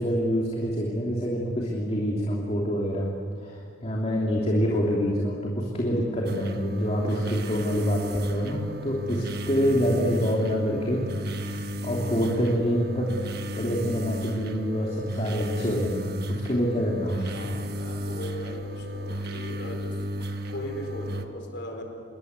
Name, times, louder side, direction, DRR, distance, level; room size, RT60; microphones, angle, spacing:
voice 1, 0.0-3.1 3.4-11.0 11.4-13.1 13.6-17.3, equal, 35° left, -2 dB, 3.0 m, -26 dB
sound 1, 6.3-21.3, equal, 55° right, 1.5 m, -34 dB
voice 2, 17.1-20.0 20.5-21.8, equal, 60° left, 3 dB, 4.8 m, -39 dB
27.0 x 22.5 x 8.2 m, 2.3 s
head